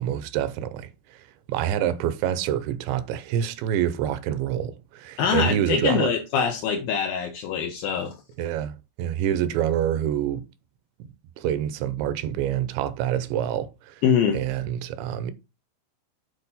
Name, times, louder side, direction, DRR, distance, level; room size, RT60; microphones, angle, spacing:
voice 1, 0.0-6.1 8.4-10.4 11.4-14.0 14.3-15.3, right 10 dB, 80° right, 2.9 m, -27 dB
voice 2, 5.2-8.1 14.0-14.4, left 7 dB, 90° left, 2.0 m, -24 dB
8.9 x 4.2 x 4.1 m
omnidirectional pair, 5.2 m